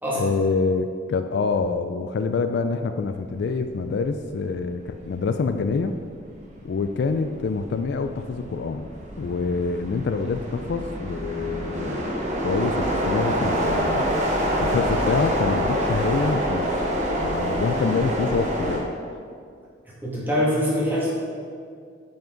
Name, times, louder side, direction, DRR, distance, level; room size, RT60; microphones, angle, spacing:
voice 1, 0.2-5.9 6.6-8.9 9.2-12.0 12.4-14.0 14.6-16.7 17.2-18.8, left 4 dB, 55° left, 8 dB, 0.3 m, -26 dB
sound 1, 3.8-4.0 4.4-18.8, equal, 40° right, 1.1 m, -26 dB
voice 2, 20.0-21.1, equal, 10° right, -7 dB, 2.0 m, -23 dB
8.8 x 5.9 x 3.8 m, 2.2 s
head